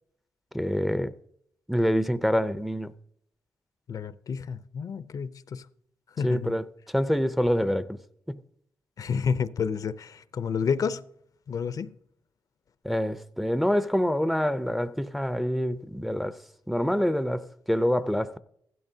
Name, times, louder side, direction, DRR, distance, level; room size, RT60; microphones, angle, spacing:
voice 1, 0.5-1.1 1.7-2.9 6.2-8.0 8.3-8.4 12.8-16.4 16.7-18.4, equal, ahead, 0.5 m, -26 dB
voice 2, 3.9-5.7 6.2-6.6 9.0-11.0 11.5-11.9, left 6 dB, 55° left, 0.5 m, -30 dB
15.5 x 12.5 x 2.7 m
cardioid pair, 90°, 7 cm